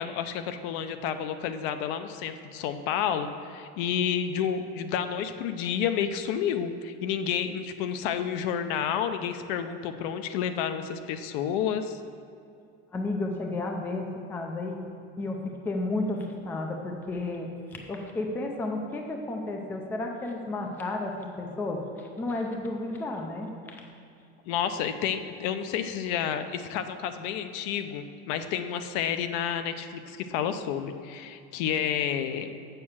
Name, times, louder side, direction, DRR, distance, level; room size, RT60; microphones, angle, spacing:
voice 1, 0.0-12.0 24.5-32.5, left 8 dB, 60° left, 9 dB, 0.6 m, -30 dB
voice 2, 12.9-14.8 15.2-23.5 23.8-23.9, left 2 dB, 5° left, 2 dB, 0.4 m, -32 dB
7.3 x 6.8 x 7.2 m, 2.5 s
cardioid pair, 180°, 30 cm